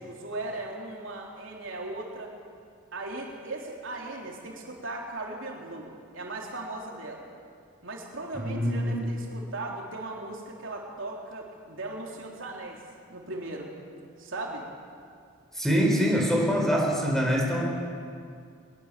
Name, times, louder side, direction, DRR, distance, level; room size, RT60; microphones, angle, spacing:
voice 1, 0.0-2.3 2.9-7.2 7.8-12.8 13.1-13.7 14.2-14.7, right 2 dB, 65° right, -1 dB, 3.6 m, -38 dB
voice 2, 8.3-9.0 15.5-17.6, equal, ahead, -1 dB, 4.6 m, -24 dB
23.0 x 21.5 x 7.6 m, 2.3 s
head